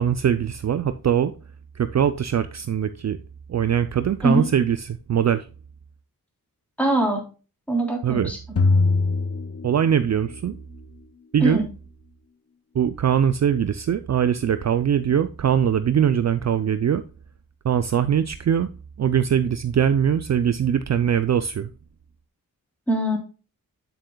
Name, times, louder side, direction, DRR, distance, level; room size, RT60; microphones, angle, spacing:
voice 1, 0.0-1.3 1.8-3.2 3.5-5.5 8.0-8.3 9.6-10.5 11.3-11.7 12.7-17.0 17.6-18.7 19.0-21.7, right 8 dB, 50° right, 0.5 m, -22 dB
voice 2, 6.8-7.2 7.7-8.4 11.4-11.6 22.9-23.2, right 1 dB, 5° left, 3.2 m, -22 dB
sound 1, 8.6-10.3, left 3 dB, 40° left, 0.9 m, -22 dB
9.1 x 7.6 x 2.2 m
wide cardioid pair, 115°, 35 cm